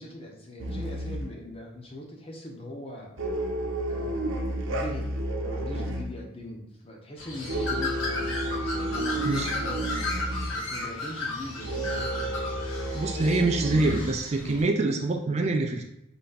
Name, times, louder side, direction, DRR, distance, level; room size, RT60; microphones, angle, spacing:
voice 1, 0.0-3.2 3.9-4.3 4.7-5.1 5.3-9.9 10.5-12.4, left 1 dB, 30° left, 0 dB, 0.8 m, -41 dB
sound 1, 0.6-1.4 3.2-6.1 7.5-10.6 11.6-14.0, right 1 dB, 75° right, 0.8 m, -31 dB
Bird, 7.2-14.6, left 2 dB, 75° left, 1.2 m, -34 dB
voice 2, 12.9-15.8, right 2 dB, 35° right, 4 dB, 0.4 m, -25 dB
4.0 x 3.3 x 4.0 m, 0.83 s
head